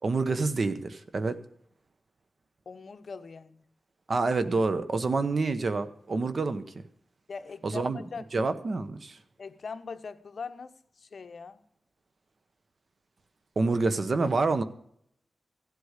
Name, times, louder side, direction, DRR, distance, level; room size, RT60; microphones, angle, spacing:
voice 1, 0.0-1.4 4.1-6.7 7.6-8.0 8.3-9.2 13.6-14.6, right 3 dB, 50° right, 1.0 m, -27 dB
voice 2, 2.7-3.6 7.3-8.2 9.4-11.6, left 5 dB, 60° left, 0.9 m, -41 dB
16.0 x 8.2 x 6.6 m
wide cardioid pair, 105°, 0 cm